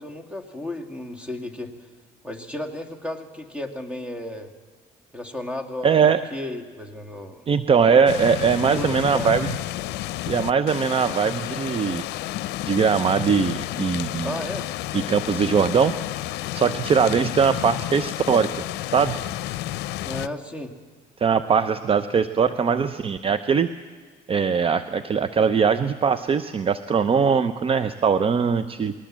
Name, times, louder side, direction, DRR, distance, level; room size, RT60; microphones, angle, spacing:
voice 1, 0.0-1.7 2.2-4.5 5.1-7.4 8.7-9.3 14.2-14.7 20.0-20.7, left 1 dB, 5° right, 7 dB, 2.1 m, -33 dB
voice 2, 5.8-6.2 7.5-9.6 10.3-12.1 12.7-14.3 14.9-15.9 16.5-18.5 18.9-19.2 21.2-23.7 24.3-28.9, right 6 dB, 35° right, 12 dB, 0.7 m, -21 dB
sound 1, 8.1-20.3, left 15 dB, 80° left, 0.6 m, -31 dB
20.5 x 19.0 x 7.4 m, 1.5 s
cardioid pair, 110°, 17 cm